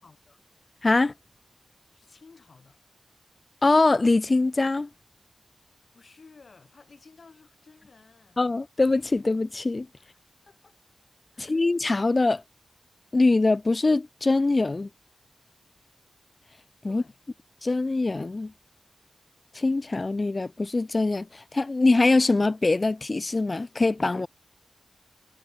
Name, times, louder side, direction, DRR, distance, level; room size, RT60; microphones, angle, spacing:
voice 1, 0.0-0.5 1.9-2.8 5.9-8.4 10.0-10.8 11.3-11.6 16.8-17.2, left 4 dB, 55° left, 6.4 m, -55 dB
voice 2, 0.8-1.1 3.6-4.9 8.4-9.9 11.4-12.4 13.1-14.9 16.8-17.0 17.6-18.5 19.5-24.3, left 3 dB, 35° left, 0.6 m, -23 dB
wide cardioid pair, 110°, 0 cm